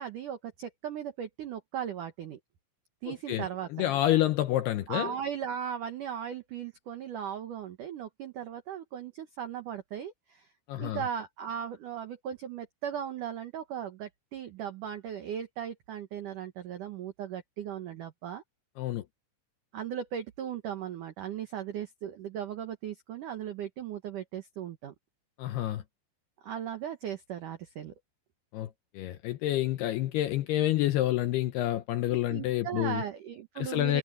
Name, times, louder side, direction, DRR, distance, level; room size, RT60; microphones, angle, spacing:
voice 1, 0.0-2.4 3.0-3.9 4.9-10.5 10.8-18.4 19.7-24.9 26.4-27.9 32.3-34.0, right 9 dB, 90° right, 1.8 m, -37 dB
voice 2, 3.1-3.5 3.7-5.2 10.7-11.0 18.8-19.0 25.4-25.8 28.5-33.0 33.6-34.0, left 14 dB, 85° left, 2.3 m, -28 dB
omnidirectional pair, 5.7 m